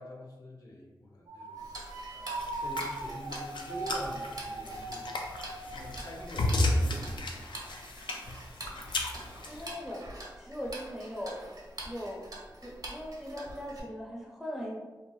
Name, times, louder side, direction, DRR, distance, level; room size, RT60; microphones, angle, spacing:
voice 1, 0.0-1.6 2.1-5.2 5.7-7.7, left 1 dB, 50° left, -2 dB, 0.7 m, -45 dB
sound 1, 1.3-6.8, right 3 dB, 85° right, 0.4 m, -40 dB
Tick-tock, 1.6-13.8, right 1 dB, 50° right, 0.7 m, -46 dB
sound 2, 2.3-9.7, left 1 dB, 75° left, 0.4 m, -33 dB
voice 2, 9.4-10.1 10.4-11.5 11.8-12.2 12.6-14.8, equal, 5° right, -3 dB, 0.5 m, -39 dB
2.6 x 2.0 x 3.1 m, 1.2 s
wide cardioid pair, 55°, 8 cm